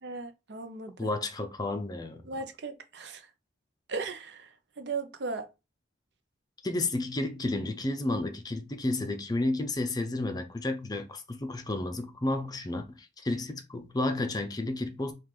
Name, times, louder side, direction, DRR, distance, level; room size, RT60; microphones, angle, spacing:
voice 1, 0.0-1.2 2.3-3.2 3.9-4.5 4.8-5.5, right 4 dB, 65° right, 0.6 m, -37 dB
voice 2, 1.0-2.2 6.6-15.1, left 2 dB, 20° left, 0.5 m, -31 dB
4.7 x 2.4 x 3.7 m
head